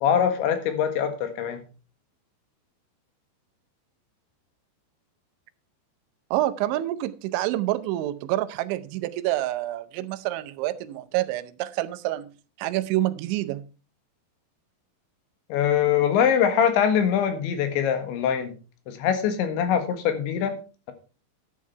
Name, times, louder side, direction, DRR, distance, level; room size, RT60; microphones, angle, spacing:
voice 1, 0.0-1.6 15.5-18.5 18.9-20.6, left 8 dB, 80° left, 4.0 m, -23 dB
voice 2, 6.3-12.3 12.6-13.6, right 15 dB, 90° right, 3.2 m, -27 dB
12.5 x 8.5 x 4.6 m
omnidirectional pair, 5.2 m